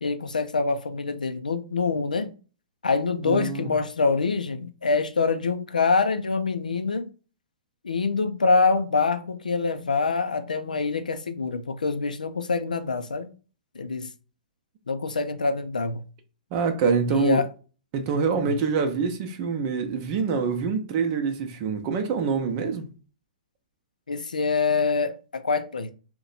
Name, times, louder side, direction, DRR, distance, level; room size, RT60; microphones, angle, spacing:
voice 1, 0.0-2.3 2.8-7.1 7.8-13.3 13.8-14.1 14.9-16.0 17.1-17.5 18.4-18.6 24.1-25.9, left 4 dB, 90° left, 0.4 m, -25 dB
voice 2, 3.2-3.7 16.5-17.4 17.9-22.9, right 5 dB, 40° right, 0.6 m, -25 dB
2.8 x 2.2 x 3.9 m
hypercardioid pair, 125°, 4 cm